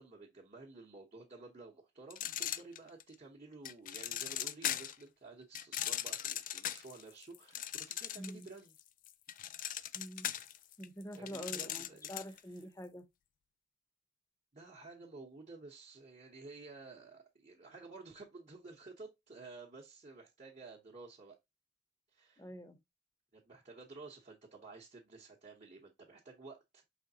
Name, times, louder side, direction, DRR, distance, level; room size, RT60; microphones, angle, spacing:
voice 1, 0.0-8.7 11.1-12.7 14.5-21.4 22.1-22.5 23.3-26.8, right 3 dB, 40° right, 0.9 m, -53 dB
sound 1, 2.1-3.1 3.7-5.0 5.5-8.5 8.8-12.4, left 11 dB, 45° left, 0.3 m, -39 dB
voice 2, 8.2-8.5 9.9-10.3 10.8-13.0 22.4-22.8, equal, 15° left, 0.7 m, -46 dB
5.0 x 3.3 x 2.7 m
head